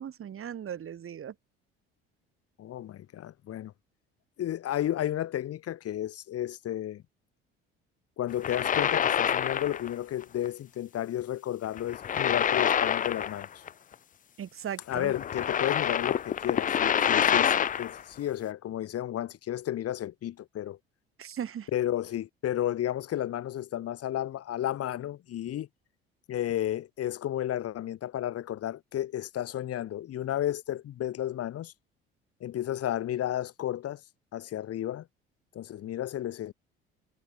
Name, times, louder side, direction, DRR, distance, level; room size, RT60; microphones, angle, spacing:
voice 1, 0.0-1.3 14.4-15.1 21.2-21.7, right 9 dB, 45° right, 7.8 m, -38 dB
voice 2, 2.6-3.7 4.4-7.0 8.2-13.6 14.9-20.8 21.7-25.7 26.3-31.7 32.4-34.0 34.3-35.1 35.5-36.5, left 12 dB, 55° left, 4.4 m, -32 dB
sound 1, 8.3-9.9 10.2-10.5 11.8-13.7 13.9-14.0 14.9-18.0, left 9 dB, 30° left, 0.5 m, -27 dB
hypercardioid pair, 60°, 29 cm